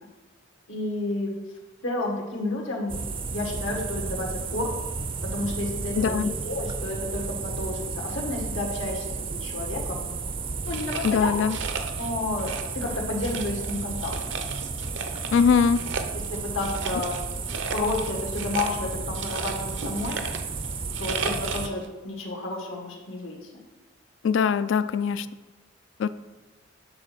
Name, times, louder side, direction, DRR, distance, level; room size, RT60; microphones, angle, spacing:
voice 1, 0.7-1.3 1.8-3.0 3.3-4.7 5.3-10.0 10.6-11.3 12.0-12.5 12.7-14.1 16.3-17.2 17.7-20.2 21.0-23.5, left 2 dB, 90° left, 0 dB, 1.5 m, -31 dB
sound 1, 2.9-21.7, right 4 dB, 25° right, 0.4 m, -33 dB
voice 2, 6.0-6.3 11.0-11.6 15.3-15.8 24.2-25.3 26.0-26.1, left 6 dB, 70° left, 14 dB, 0.3 m, -22 dB
sound 2, 10.7-12.1 12.4-12.9 13.2-15.5 15.7-21.9, right 5 dB, 70° right, 0.6 m, -34 dB
7.8 x 4.1 x 6.0 m, 1.2 s
head